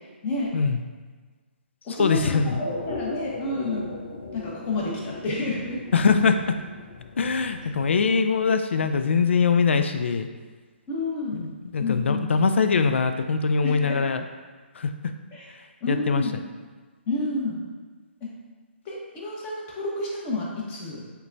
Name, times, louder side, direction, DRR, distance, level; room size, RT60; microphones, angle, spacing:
voice 1, 0.2-0.5 1.8-2.4 2.9-3.9 4.3-5.8 10.9-11.4 11.8-12.4 13.6-14.0 15.3-15.5 15.8-16.4 17.1-17.6 18.2-18.3 18.8-21.0, left 2 dB, 25° left, -5 dB, 1.0 m, -29 dB
voice 2, 2.0-2.6 5.9-6.4 7.2-10.3 11.3-14.2 14.8-14.9 15.9-16.2, left 5 dB, 75° left, 7 dB, 0.4 m, -22 dB
sound 1, 2.4-7.9, left 2 dB, 55° left, 0.7 m, -37 dB
6.6 x 2.2 x 2.6 m, 1.4 s
hypercardioid pair, 145°, 6 cm